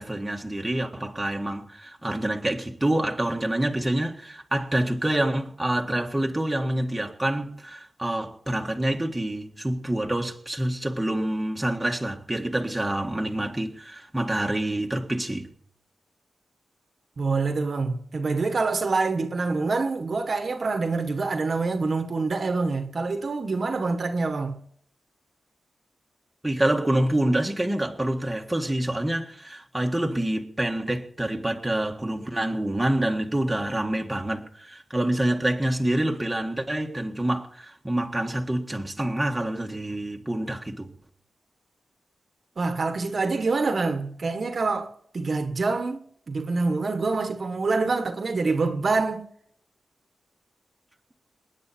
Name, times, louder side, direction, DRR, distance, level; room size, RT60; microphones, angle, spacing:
voice 1, 0.0-15.5 26.4-40.9, right 1 dB, 10° right, 1.7 m, -27 dB
voice 2, 17.2-24.6 42.6-49.3, right 3 dB, 45° right, 1.4 m, -26 dB
27.5 x 9.8 x 4.5 m
wide cardioid pair, 135°, 0 cm